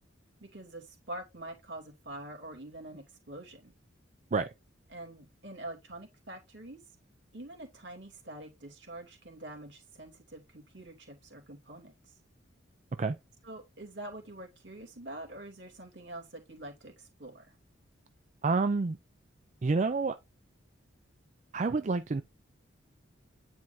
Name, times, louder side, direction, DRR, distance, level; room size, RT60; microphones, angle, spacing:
voice 1, 0.4-3.7 4.9-6.8 7.3-12.2 13.4-17.5, right 1 dB, 65° right, 2.6 m, -45 dB
voice 2, 18.4-19.0 19.6-20.2 21.5-22.2, right 3 dB, 35° right, 0.4 m, -28 dB
9.6 x 4.4 x 2.7 m
head